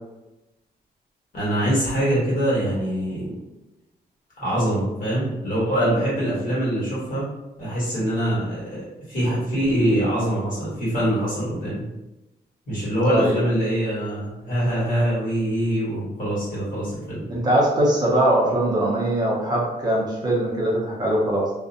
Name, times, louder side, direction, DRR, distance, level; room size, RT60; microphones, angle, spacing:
voice 1, 1.3-3.3 4.4-7.3 7.6-11.8 12.7-17.3, right 1 dB, 55° left, -7 dB, 1.3 m, -24 dB
voice 2, 13.0-13.4 17.3-21.5, right 1 dB, 25° right, -5 dB, 0.5 m, -21 dB
2.4 x 2.1 x 2.6 m, 1.0 s
wide cardioid pair, 155°, 17 cm